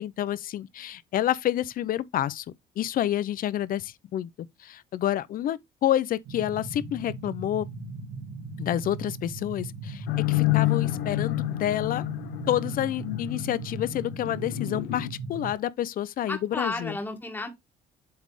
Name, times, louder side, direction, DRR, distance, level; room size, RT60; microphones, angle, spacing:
voice 1, 0.0-2.4 2.8-4.3 4.6-7.7 8.6-12.0 12.5-17.0, left 12 dB, 55° left, 0.7 m, -29 dB
sound 1, 6.2-15.5, right 3 dB, 75° right, 2.1 m, -39 dB
sound 2, 10.1-15.1, left 20 dB, 90° left, 1.1 m, -29 dB
voice 2, 16.3-17.5, left 2 dB, 10° left, 1.9 m, -32 dB
8.0 x 3.4 x 4.9 m
cardioid pair, 110°, 17 cm